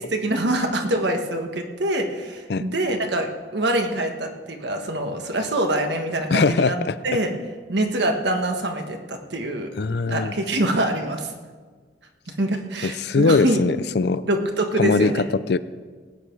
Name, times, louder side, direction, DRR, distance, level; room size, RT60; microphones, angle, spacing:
voice 1, 0.1-6.8 7.0-7.4 7.7-9.7 10.1-11.3 12.3-13.6 14.2-15.2, right 1 dB, 65° right, 4 dB, 1.5 m, -25 dB
voice 2, 6.3-6.9 9.8-10.3 12.8-14.2 14.8-15.1 15.5-15.6, left 4 dB, 60° left, 15 dB, 0.4 m, -21 dB
19.0 x 8.8 x 4.6 m, 1.5 s
head